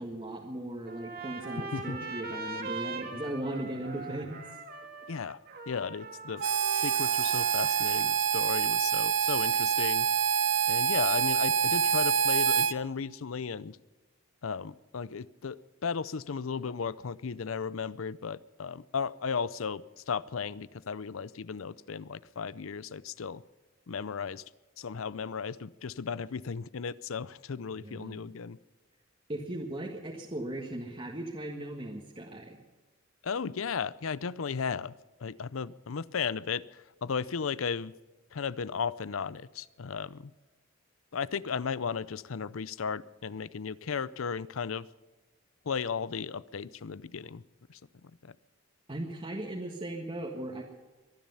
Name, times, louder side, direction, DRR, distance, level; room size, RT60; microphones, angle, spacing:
voice 1, 0.0-4.4 27.8-28.2 29.3-32.6 48.9-50.6, right 1 dB, 25° right, -1 dB, 1.6 m, -37 dB
Trumpet, 0.9-8.2, right 3 dB, 50° right, 2.1 m, -41 dB
voice 2, 1.7-2.1 5.1-5.4 5.7-6.4 6.7-10.1 10.7-13.8 14.4-23.4 23.9-24.4 24.8-28.6 33.2-34.9 35.2-37.9 38.3-40.3 41.1-44.9 45.6-47.4 47.7-48.4, left 6 dB, 85° left, 19 dB, 0.6 m, -35 dB
Harmonica, 6.4-12.7, right 7 dB, 65° right, 0.6 m, -26 dB
23.0 x 10.5 x 5.6 m, 1.2 s
head